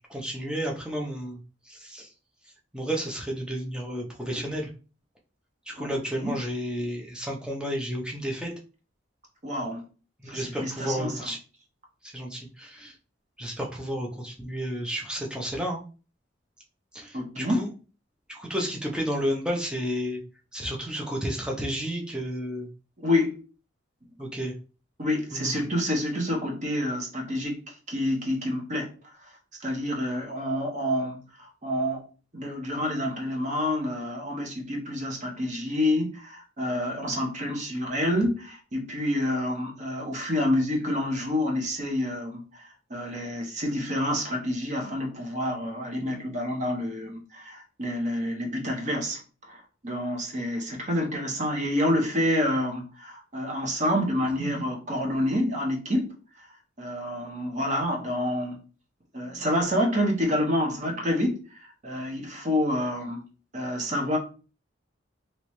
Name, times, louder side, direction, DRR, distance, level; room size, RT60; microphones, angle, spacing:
voice 1, 0.1-1.4 1.7-2.1 2.7-4.7 5.7-8.5 10.2-11.4 12.1-12.9 13.4-15.8 16.9-17.7 18.3-20.2 20.5-22.7 24.2-24.5 25.3-25.6, equal, 5° right, 0.6 m, -31 dB
voice 2, 5.8-6.4 9.4-9.8 10.3-11.3 17.1-17.7 23.0-23.4 25.0-28.9 29.6-32.1 32.3-49.2 49.5-56.2 56.8-58.6 59.1-63.2 63.5-64.2, left 1 dB, 35° right, 0.8 m, -28 dB
3.1 x 2.9 x 3.0 m
head